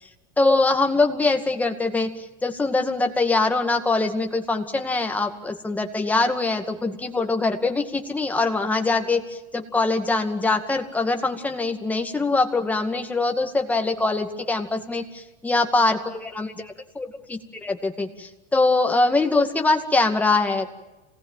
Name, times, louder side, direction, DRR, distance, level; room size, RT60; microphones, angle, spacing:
voice 1, 0.4-20.7, left 3 dB, 10° left, 5 dB, 2.2 m, -23 dB
27.0 x 19.0 x 9.2 m, 1.1 s
supercardioid pair, 155°, 17 cm